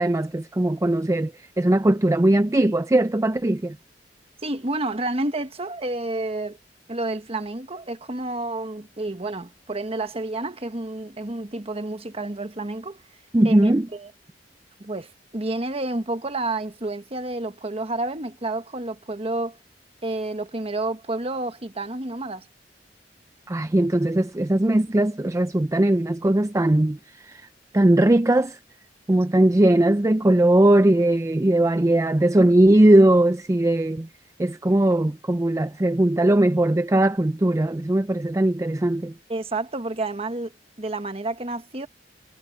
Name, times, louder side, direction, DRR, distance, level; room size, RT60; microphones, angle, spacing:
voice 1, 0.0-1.3 1.6-3.8 13.3-13.9 23.5-27.0 27.2-27.5 27.7-28.6 29.1-34.1 34.4-39.1, right 1 dB, 15° right, 0.5 m, -19 dB
voice 2, 4.4-6.6 6.9-13.0 13.4-14.1 14.8-19.6 20.0-22.5 39.3-40.5 40.8-41.9, right 2 dB, 35° right, 1.4 m, -30 dB
head